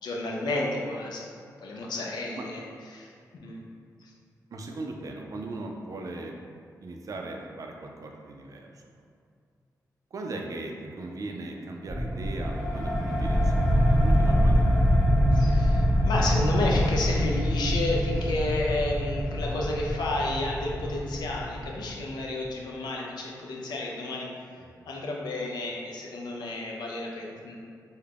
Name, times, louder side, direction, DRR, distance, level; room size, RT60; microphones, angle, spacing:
voice 1, 0.0-1.3 1.6-3.1 3.4-3.6 4.0-4.1 15.3-24.3 24.9-27.6, left 2 dB, 90° left, -2 dB, 0.4 m, -31 dB
voice 2, 4.5-6.3 6.8-8.7 10.1-13.6 13.9-14.6 24.8-24.9, right 2 dB, 55° right, 1 dB, 0.3 m, -38 dB
sound 1, 11.9-22.1, equal, ahead, 0.5 m, -24 dB
2.3 x 2.1 x 3.3 m, 2.2 s
cardioid pair, 70°, 7 cm